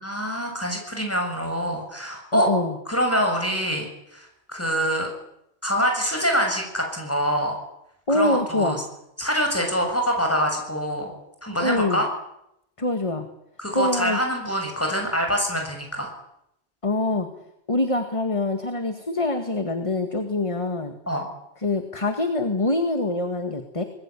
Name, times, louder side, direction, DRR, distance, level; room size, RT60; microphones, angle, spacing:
voice 1, 0.0-2.5 2.9-3.9 4.1-5.1 5.6-7.6 8.1-8.8 9.2-11.1 11.4-12.1 13.6-16.1 21.1-21.3, equal, 10° left, 3 dB, 7.2 m, -25 dB
voice 2, 2.3-2.8 8.1-8.8 11.6-12.0 12.8-13.3 13.7-14.2 16.8-17.3 17.7-20.9 21.6-23.8, left 2 dB, 30° left, 7 dB, 2.0 m, -24 dB
25.0 x 21.0 x 9.9 m, 0.83 s
omnidirectional pair, 1.1 m